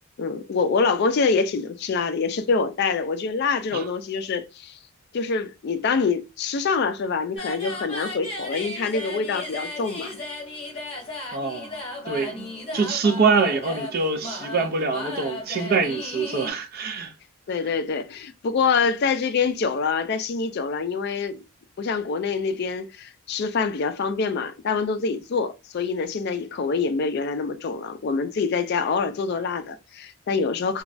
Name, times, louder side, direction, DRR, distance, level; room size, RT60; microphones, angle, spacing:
voice 1, 0.2-4.8 5.1-10.2 12.7-12.8 17.5-21.4 21.8-30.8, left 5 dB, 50° left, 0.3 m, -25 dB
sound 1, 7.3-16.5, left 2 dB, 25° left, 1.2 m, -35 dB
voice 2, 11.3-12.5 12.7-17.1, right 4 dB, 45° right, 0.4 m, -24 dB
3.0 x 2.3 x 2.5 m
head